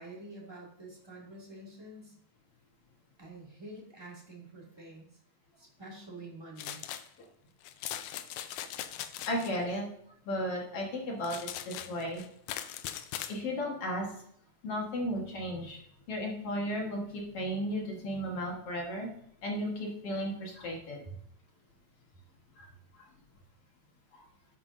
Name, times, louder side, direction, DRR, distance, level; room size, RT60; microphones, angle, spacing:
voice 1, 0.0-2.2 3.2-5.1 5.6-6.8 21.0-21.2, right 2 dB, 10° right, -5 dB, 2.0 m, -47 dB
sound 1, 6.6-7.1 7.6-9.5 11.2-13.4, left 11 dB, 85° left, 2.1 m, -40 dB
voice 2, 9.2-9.8 10.3-11.4 11.7-12.2 13.3-14.1 14.6-15.8 16.1-19.1 19.4-21.0 22.6-22.7 24.1-24.2, equal, 55° left, -1 dB, 2.3 m, -34 dB
11.5 x 9.5 x 2.7 m, 0.69 s
omnidirectional pair, 3.5 m